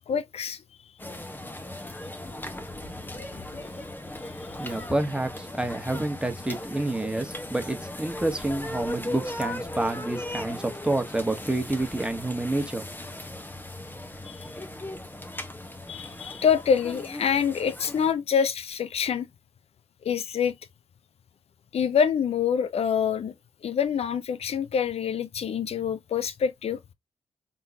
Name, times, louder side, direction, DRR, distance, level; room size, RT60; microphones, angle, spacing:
voice 1, 0.1-0.6 3.6-3.7 14.2-14.5 15.9-19.3 20.0-20.5 21.7-23.3 23.6-26.8, left 7 dB, 65° left, 0.6 m, -26 dB
sound 1, 1.0-18.1, left 1 dB, 15° left, 1.2 m, -38 dB
voice 2, 4.6-12.9, right 2 dB, 10° right, 1.4 m, -29 dB
3.8 x 3.8 x 2.8 m
supercardioid pair, 40°, 12 cm